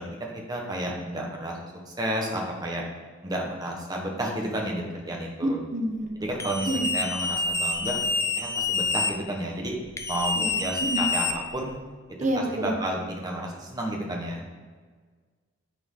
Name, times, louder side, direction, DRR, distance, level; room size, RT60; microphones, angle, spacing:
voice 1, 0.0-2.8 3.2-5.6 6.2-6.7 6.9-8.0 8.4-9.8 10.1-11.7 12.3-14.5, right 1 dB, 20° right, 0 dB, 1.3 m, -31 dB
voice 2, 5.4-6.1 6.7-6.9 10.3-11.0 12.2-12.8, right 1 dB, 35° right, 4 dB, 1.0 m, -28 dB
sound 1, 6.4-9.1 10.0-11.8, left 3 dB, 15° left, 0.5 m, -27 dB
9.2 x 4.5 x 5.6 m, 1.5 s
head